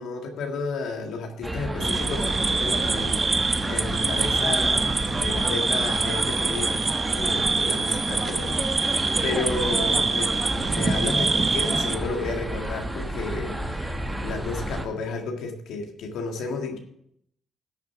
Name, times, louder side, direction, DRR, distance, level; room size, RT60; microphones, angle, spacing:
voice 1, 0.0-6.9 7.2-13.9 14.2-16.8, left 4 dB, 80° left, 3 dB, 1.7 m, -32 dB
sound 1, 1.4-14.9, right 1 dB, 10° right, 1.5 m, -31 dB
sound 2, 1.8-12.0, right 3 dB, 30° right, 0.8 m, -25 dB
11.5 x 6.7 x 5.8 m, 0.72 s
cardioid pair, 90°, 0 cm